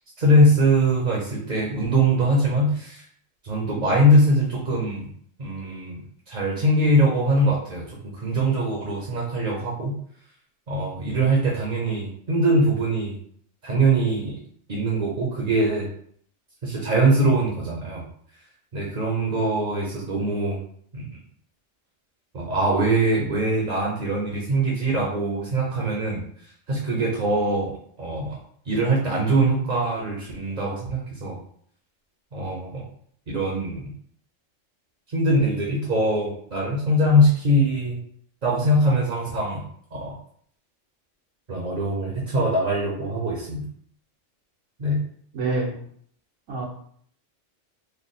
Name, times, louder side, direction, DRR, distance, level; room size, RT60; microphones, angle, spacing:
voice 1, 0.2-3.0 3.4-5.1 5.4-9.9 10.7-13.1 13.6-14.4 14.7-15.9 16.6-18.1 18.7-20.6 20.9-21.1 22.3-26.2 26.7-27.7 28.0-28.4 28.7-31.4 32.3-32.8 33.3-33.9 35.1-38.0 38.4-40.1 41.5-43.6 44.8-45.0, right 1 dB, 45° right, -3 dB, 0.9 m, -22 dB
voice 2, 45.3-45.8 46.5-46.7, right 3 dB, 85° right, -3 dB, 1.4 m, -26 dB
3.3 x 2.2 x 4.1 m, 0.62 s
omnidirectional pair, 1.3 m